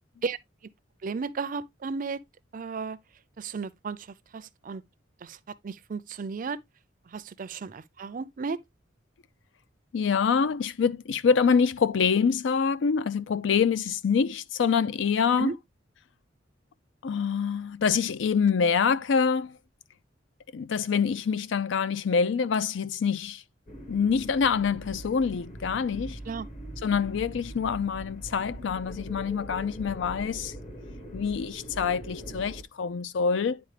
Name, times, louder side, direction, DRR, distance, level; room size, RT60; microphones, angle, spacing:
voice 1, 1.0-2.2 2.5-3.0 3.4-4.1 4.3-4.8 5.2-5.4 5.6-6.6 7.1-8.6 15.4-15.5 26.3-26.5, right 5 dB, 45° right, 0.4 m, -34 dB
voice 2, 9.9-15.5 17.0-19.6 20.5-23.4 23.9-26.2 26.8-30.5 31.1-33.6, left 6 dB, 70° left, 0.4 m, -25 dB
sound 1, 23.7-32.6, right 1 dB, 40° left, 1.3 m, -42 dB
9.6 x 4.0 x 3.2 m
head